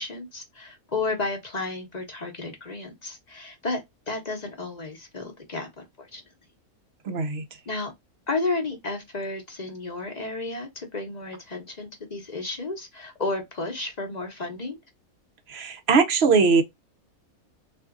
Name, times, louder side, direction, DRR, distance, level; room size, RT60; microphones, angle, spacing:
voice 1, 0.0-6.2 7.7-7.9 8.3-14.8, left 3 dB, 35° left, 0.8 m, -32 dB
voice 2, 7.0-7.4 15.5-16.6, right 4 dB, 60° right, 0.7 m, -20 dB
3.6 x 2.6 x 2.4 m
omnidirectional pair, 1.5 m